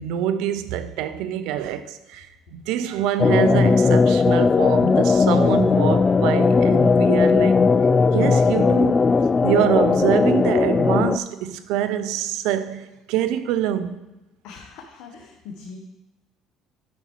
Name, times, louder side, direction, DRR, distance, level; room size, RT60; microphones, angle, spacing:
voice 1, 0.0-7.6 8.1-9.1 9.4-14.0, right 10 dB, 75° right, 0.6 m, -25 dB
sound 1, 3.2-11.2, left 4 dB, 30° left, 0.3 m, -17 dB
voice 2, 14.4-15.8, left 5 dB, 75° left, 1.0 m, -41 dB
9.4 x 5.5 x 4.7 m
supercardioid pair, 70°, 0 cm